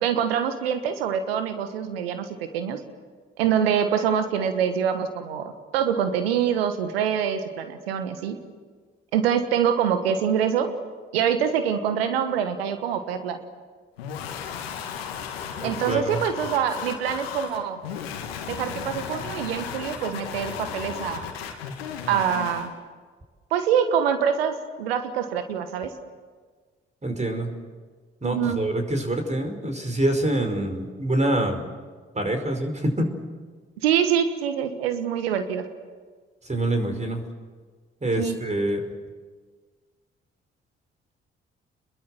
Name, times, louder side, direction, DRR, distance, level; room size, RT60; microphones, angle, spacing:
voice 1, 0.0-2.2 2.5-2.8 3.4-8.4 9.1-10.7 11.1-13.4 15.6-17.8 18.5-21.3 22.1-22.7 23.5-25.9 28.2-28.6 33.8-35.6 38.2-38.4, right 8 dB, 80° right, 9 dB, 1.4 m, -25 dB
sound 1, 14.0-22.7, left 7 dB, 80° left, 2.0 m, -35 dB
voice 2, 15.6-16.2 27.0-27.5 28.2-31.6 32.2-33.1 36.5-37.2 38.0-38.9, right 1 dB, 25° right, 5 dB, 5.1 m, -25 dB
28.5 x 22.0 x 7.8 m, 1.5 s
figure-of-eight pair, 40°, 30 cm